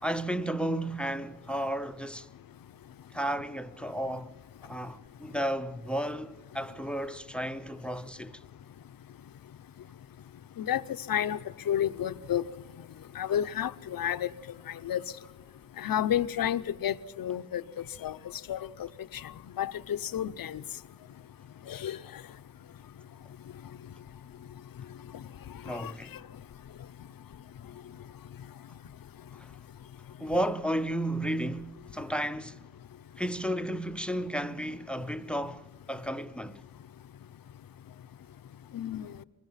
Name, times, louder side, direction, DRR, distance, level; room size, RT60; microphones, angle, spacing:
voice 1, 0.0-2.3 3.1-4.3 4.6-8.3 25.6-26.1 29.4-29.5 30.2-32.6 33.2-36.6, right 1 dB, 5° left, 0.6 m, -33 dB
voice 2, 11.1-11.4 11.7-12.4 13.2-14.3 14.8-15.0 15.8-17.6 18.0-18.2 18.5-18.6 19.2-19.3 19.6-20.6 21.7-22.0 25.7-25.9 38.7-39.2, left 10 dB, 65° left, 0.8 m, -30 dB
23.5 x 21.0 x 5.7 m
wide cardioid pair, 125°, 37 cm